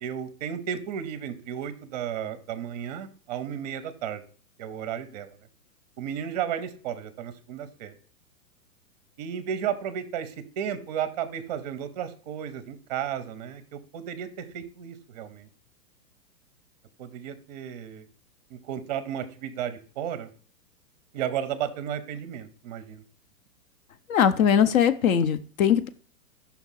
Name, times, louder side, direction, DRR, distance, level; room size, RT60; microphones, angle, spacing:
voice 1, 0.0-4.2 4.6-5.3 6.0-7.9 9.2-15.5 17.0-18.0 18.5-20.3 21.1-23.0, right 9 dB, 30° right, 12 dB, 0.5 m, -33 dB
voice 2, 24.1-25.9, left 8 dB, 65° left, 12 dB, 0.8 m, -21 dB
5.9 x 3.6 x 5.7 m, 0.43 s
hypercardioid pair, 160°, 45 cm